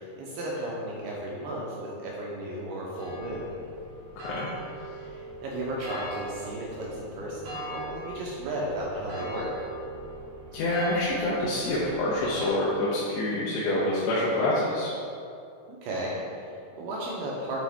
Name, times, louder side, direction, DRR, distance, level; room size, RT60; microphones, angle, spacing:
voice 1, 0.0-3.5 5.0-9.5 15.8-17.6, right 1 dB, 80° right, -4 dB, 2.4 m, -34 dB
sound 1, 3.0-12.5, right 1 dB, 60° right, 2.2 m, -41 dB
voice 2, 4.2-4.5 10.5-14.9, left 1 dB, 80° left, -7 dB, 2.8 m, -26 dB
8.4 x 4.1 x 3.5 m, 2.5 s
omnidirectional pair, 5.1 m